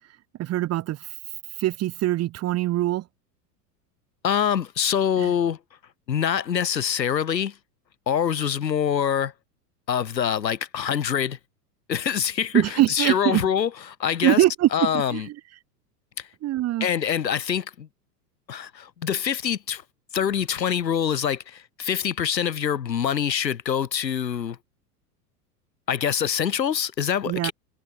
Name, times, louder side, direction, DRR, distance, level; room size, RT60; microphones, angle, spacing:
voice 1, 0.4-1.1 1.6-3.0 5.2-5.3 12.5-13.4 14.2-15.4 16.4-16.9 27.2-27.5, right 15 dB, 30° right, 1.0 m, -23 dB
voice 2, 4.2-5.6 6.1-7.5 8.1-9.3 9.9-11.4 11.9-12.6 12.9-13.7 14.0-14.4 14.7-15.3 16.2-16.3 16.8-17.9 18.5-19.8 20.1-24.6 25.9-27.5, left 8 dB, 85° left, 1.9 m, -25 dB
hypercardioid pair, 95°, 49 cm